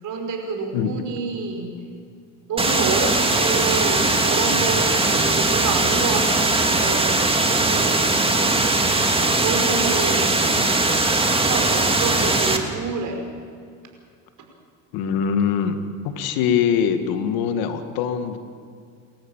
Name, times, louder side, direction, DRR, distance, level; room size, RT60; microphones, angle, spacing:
voice 1, 0.0-1.8 2.5-8.3 9.4-10.4 11.1-13.2, right 4 dB, 55° right, 2 dB, 5.7 m, -28 dB
sound 1, 2.6-12.6, right 2 dB, 15° right, 2.6 m, -20 dB
voice 2, 14.9-15.8 16.0-18.4, left 7 dB, 70° left, 8 dB, 1.9 m, -22 dB
29.0 x 14.0 x 7.3 m, 2.3 s
hypercardioid pair, 75°, 38 cm